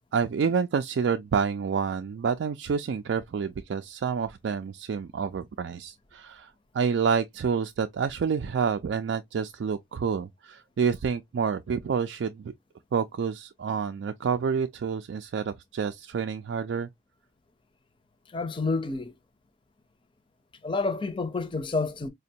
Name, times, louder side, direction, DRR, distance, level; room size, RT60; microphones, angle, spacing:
voice 1, 0.1-12.5 12.9-16.9, right 6 dB, 70° right, 0.3 m, -28 dB
voice 2, 18.3-19.1 20.6-22.1, left 3 dB, 25° left, 0.5 m, -29 dB
5.0 x 2.2 x 2.7 m
head